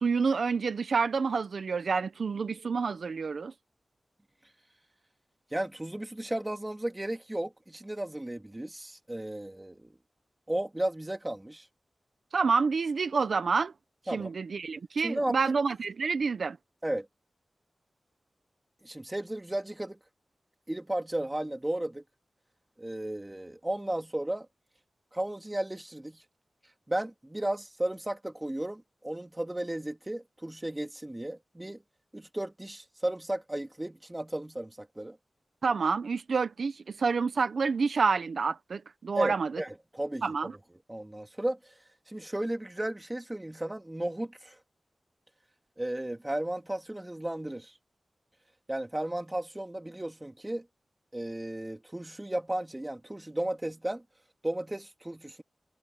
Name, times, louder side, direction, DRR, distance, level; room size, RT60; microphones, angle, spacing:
voice 1, 0.0-3.5 12.3-13.7 14.1-16.6 35.6-39.5 40.2-40.5, right 5 dB, 75° right, 1.0 m, -28 dB
voice 2, 5.5-9.9 10.5-11.7 14.1-14.3 15.0-15.4 16.8-17.1 18.8-20.0 20.7-22.0 22.8-24.5 25.1-26.2 26.9-31.8 32.1-35.2 39.2-40.2 40.9-41.6 42.1-44.6 45.8-47.7 48.7-50.7 51.1-54.0 54.4-55.4, right 1 dB, 15° right, 3.6 m, -34 dB
wide cardioid pair, 85°, 0 cm